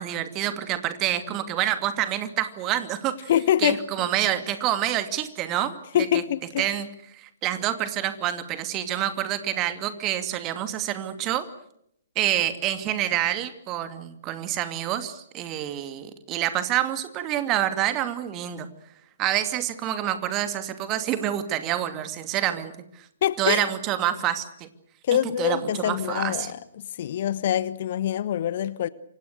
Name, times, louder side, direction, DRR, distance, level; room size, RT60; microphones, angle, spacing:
voice 1, 0.0-3.3 3.6-5.7 6.1-6.2 6.6-6.9 7.1-11.5 12.2-18.7 19.2-22.7 23.4-24.7 25.4-26.5, right 12 dB, 25° right, 2.5 m, -27 dB
voice 2, 3.3-3.8 5.9-6.7 23.2-23.7 25.0-28.9, left 11 dB, 45° left, 1.1 m, -25 dB
28.0 x 25.5 x 6.7 m
figure-of-eight pair, 125°, 0 cm